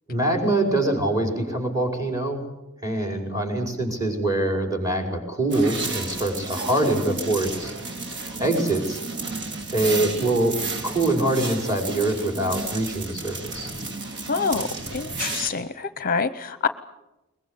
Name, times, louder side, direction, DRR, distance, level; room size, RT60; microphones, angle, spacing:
voice 1, 0.1-2.4 2.8-7.7 8.4-9.0 9.7-10.6 10.8-13.7, right 2 dB, 15° right, 3 dB, 5.3 m, -24 dB
sound 1, 5.5-15.5, right 3 dB, 55° right, 3.0 m, -32 dB
voice 2, 14.3-16.7, left 5 dB, 40° left, 12 dB, 0.8 m, -26 dB
22.0 x 21.5 x 8.2 m, 0.98 s
head